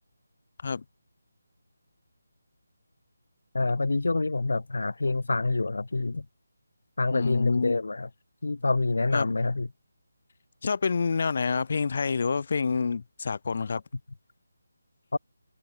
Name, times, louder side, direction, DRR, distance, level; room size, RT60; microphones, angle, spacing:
voice 1, 3.5-6.2 7.0-8.1 8.4-9.7 15.1-15.2, left 3 dB, 75° left, 1.4 m, -26 dB
voice 2, 7.1-7.8 9.1-9.3 10.6-13.8, left 5 dB, 50° left, 1.7 m, -27 dB
figure-of-eight pair, 160°, 0 cm